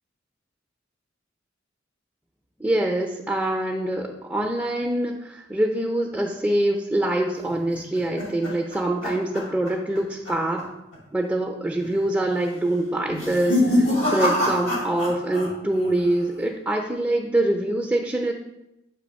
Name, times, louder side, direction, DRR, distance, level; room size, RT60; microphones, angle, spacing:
voice 1, 2.6-10.7 11.1-18.3, right 1 dB, 5° right, 1 dB, 0.4 m, -25 dB
sound 1, 7.5-10.0 10.3-10.6 10.9-11.0 11.8-12.2 13.0-15.5 15.7-16.3, left 1 dB, 85° left, 2.5 m, -25 dB
7.7 x 2.9 x 5.2 m, 0.90 s
head